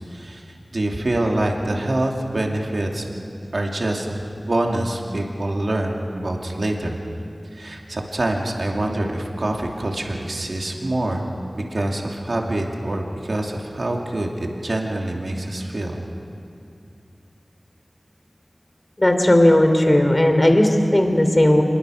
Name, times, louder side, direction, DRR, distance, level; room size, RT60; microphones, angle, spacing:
voice 1, 0.1-3.1 3.5-4.2 4.5-7.0 7.5-11.2 11.5-16.0, right 1 dB, 65° right, 0 dB, 2.5 m, -25 dB
voice 2, 19.0-21.6, left 1 dB, 30° left, 5 dB, 3.1 m, -16 dB
26.0 x 21.5 x 6.4 m, 2.6 s
wide cardioid pair, 50°, 0 cm